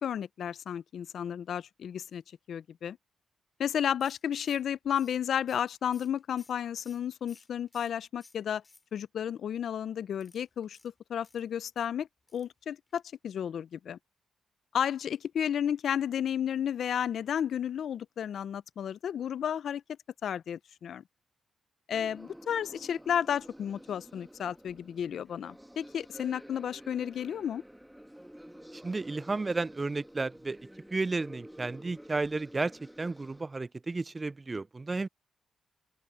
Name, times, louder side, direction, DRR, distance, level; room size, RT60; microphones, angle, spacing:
voice 1, 0.0-2.2 2.5-3.0 3.6-8.6 8.9-10.8 11.1-12.1 12.3-14.0 14.7-19.8 20.2-21.0 21.9-27.6, left 9 dB, 70° left, 0.5 m, -32 dB
sound 1, 4.0-9.2 10.1-11.9 12.3-12.6 12.9-13.0 13.2-13.3, left 3 dB, 25° left, 3.2 m, -60 dB
sound 2, 21.9-33.4, equal, 5° right, 1.7 m, -50 dB
voice 2, 28.7-35.1, right 3 dB, 25° right, 0.3 m, -33 dB
open air
cardioid pair, 85°, 0 cm